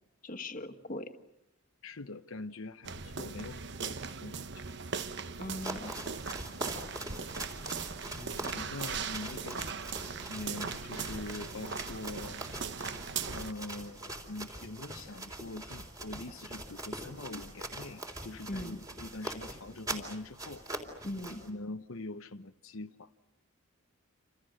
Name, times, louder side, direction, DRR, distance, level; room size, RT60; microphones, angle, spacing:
voice 1, 0.2-1.1 5.4-5.9 18.5-18.8 21.0-21.4, left 1 dB, 40° left, 7 dB, 1.6 m, -39 dB
voice 2, 1.8-4.7 8.2-9.9 10.2-12.4 13.2-20.6 21.4-23.1, left 2 dB, 70° left, 7 dB, 0.9 m, -44 dB
sound 1, 2.8-13.5, right 5 dB, 55° right, 1.0 m, -39 dB
sound 2, 5.5-21.5, right 1 dB, 15° right, 3.7 m, -43 dB
28.5 x 28.5 x 6.5 m, 0.88 s
head